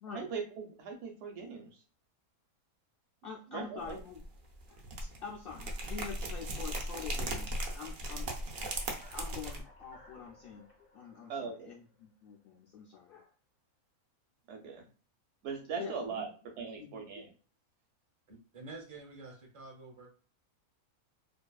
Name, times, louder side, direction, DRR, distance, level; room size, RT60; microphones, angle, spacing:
voice 1, 0.1-1.8 3.5-4.0 11.3-11.7 14.5-14.8 15.4-17.3, right 5 dB, 60° right, 3 dB, 0.9 m, -40 dB
voice 2, 3.2-4.2 4.7-8.3 8.6-8.8 9.1-10.6 10.9-13.3 15.8-16.2 16.8-16.9, left 6 dB, 85° left, -2 dB, 0.5 m, -46 dB
sound 1, 3.8-4.3 4.5-9.6, right 1 dB, 85° right, 0.4 m, -37 dB
sound 2, 8.3-12.6, left 1 dB, 30° left, 0.4 m, -59 dB
voice 3, 18.3-20.1, right 3 dB, 35° right, 0 dB, 0.6 m, -48 dB
2.7 x 2.2 x 2.3 m, 0.40 s
omnidirectional pair, 1.5 m